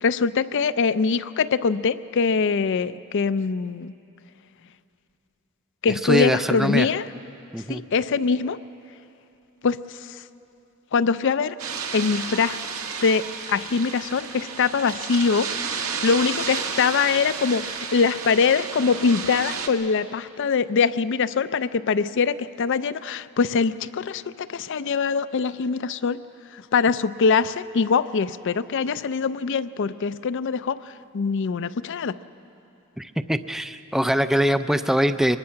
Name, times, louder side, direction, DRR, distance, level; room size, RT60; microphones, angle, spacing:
voice 1, 0.0-3.9 5.8-7.1 7.7-8.6 9.6-10.2 10.9-11.6 11.9-12.6 13.0-26.2 26.5-32.2, left 5 dB, 60° left, 14 dB, 0.5 m, -23 dB
voice 2, 5.9-6.9 7.5-7.8 33.0-35.4, equal, ahead, 10 dB, 0.4 m, -23 dB
sound 1, 11.6-19.7, right 6 dB, 80° right, 1.5 m, -32 dB
23.5 x 21.0 x 5.8 m, 2.8 s
head